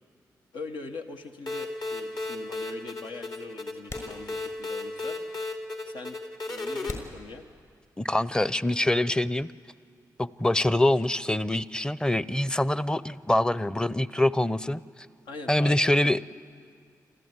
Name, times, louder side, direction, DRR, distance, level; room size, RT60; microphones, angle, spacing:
voice 1, 0.5-5.2 5.8-6.2 6.5-7.4 15.2-16.0, left 3 dB, 85° left, 3 dB, 1.3 m, -42 dB
sound 1, 1.5-6.9, left 2 dB, 60° left, 2.8 m, -35 dB
sound 2, 3.9-4.8 5.1-5.2 5.9-6.0 6.8-8.1, left 2 dB, 45° left, 6.3 m, -42 dB
voice 2, 8.0-9.5 10.2-14.8 15.5-16.2, left 1 dB, 10° left, 17 dB, 0.6 m, -24 dB
27.0 x 14.0 x 9.6 m, 2.2 s
supercardioid pair, 45°, 8 cm